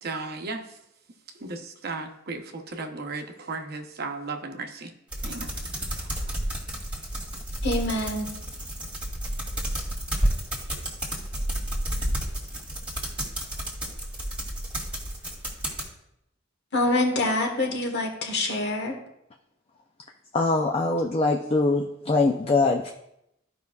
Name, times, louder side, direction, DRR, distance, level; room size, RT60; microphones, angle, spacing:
voice 1, 0.0-0.8 1.3-4.9 5.2-5.5, right 3 dB, 55° right, 5 dB, 0.9 m, -35 dB
sound 1, 5.1-15.9, right 1 dB, 5° right, 1.9 m, -31 dB
voice 2, 7.6-8.3 16.7-19.0, left 2 dB, 60° left, 2 dB, 1.4 m, -25 dB
voice 3, 20.3-22.9, left 3 dB, 30° left, 2 dB, 0.4 m, -23 dB
14.0 x 5.3 x 2.4 m, 0.81 s
head